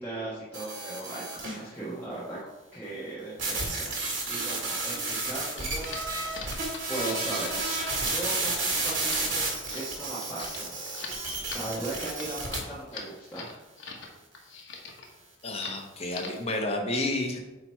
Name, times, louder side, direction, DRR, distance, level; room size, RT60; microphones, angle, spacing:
voice 1, 0.0-2.4 2.7-4.0 4.3-5.9 6.9-7.6 8.1-9.4 9.7-10.8 11.5-13.5, right 2 dB, 10° left, -10 dB, 1.2 m, -37 dB
sound 1, 0.5-1.6 3.4-12.6, right 3 dB, 70° right, 1.7 m, -31 dB
sound 2, 4.9-14.1 14.3-15.1 15.4-15.8 16.1-16.5, left 5 dB, 65° left, 1.1 m, -43 dB
voice 2, 15.4-17.4, left 2 dB, 30° left, 2 dB, 0.9 m, -30 dB
8.6 x 3.0 x 4.6 m, 1.1 s
head